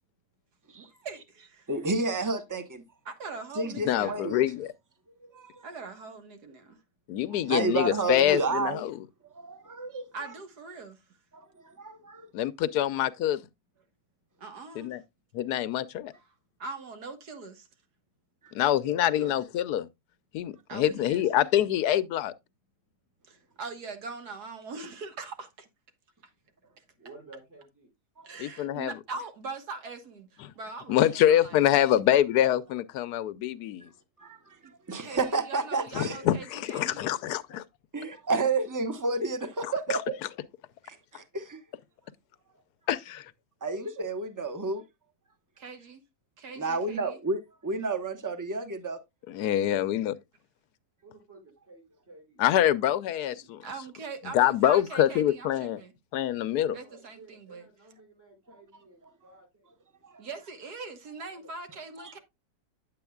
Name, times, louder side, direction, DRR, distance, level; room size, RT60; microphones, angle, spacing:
voice 1, 0.7-1.7 3.1-4.2 5.6-6.8 10.1-11.0 13.0-13.1 14.4-14.9 16.6-17.7 20.7-21.2 23.3-25.7 28.2-31.6 34.6-34.7 35.0-37.0 45.6-46.0 46.4-47.2 53.4-55.9 56.7-57.7 60.2-62.2, right 4 dB, 70° right, 1.9 m, -41 dB
voice 2, 1.7-2.8 3.5-4.4 5.2-5.7 7.3-8.8 9.3-10.3 11.3-12.3 18.4-18.5 28.2-28.3 34.2-36.2 37.9-40.2 40.8-41.6 43.6-44.8 46.6-49.0 60.0-60.2 61.8-62.2, right 3 dB, 15° right, 0.8 m, -31 dB
voice 3, 3.9-4.7 7.1-9.0 12.3-13.4 14.8-15.0 15.3-16.1 18.5-19.9 20.3-22.3 28.4-28.9 30.4-30.5 30.9-33.9 35.9-37.6 39.9-40.0 42.9-43.3 49.3-50.2 52.4-53.6 54.3-55.8 56.1-56.7, left 11 dB, 75° left, 1.2 m, -25 dB
voice 4, 9.4-9.8 12.2-12.3 14.1-14.3 18.5-19.4 20.3-20.4 26.6-26.7 26.9-27.9 31.5-31.6 51.0-52.4 56.4-59.7 61.3-62.2, right 2 dB, 35° right, 5.0 m, -52 dB
9.2 x 7.8 x 2.3 m
omnidirectional pair, 1.8 m